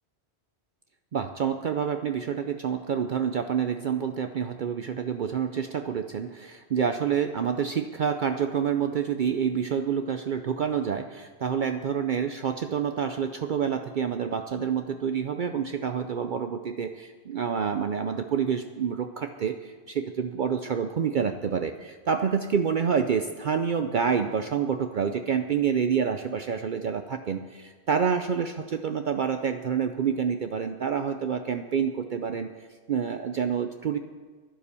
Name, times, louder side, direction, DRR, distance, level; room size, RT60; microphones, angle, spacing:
voice 1, 1.1-34.0, right 7 dB, 55° right, 7 dB, 0.7 m, -28 dB
11.5 x 11.0 x 6.9 m, 1.5 s
omnidirectional pair, 1.1 m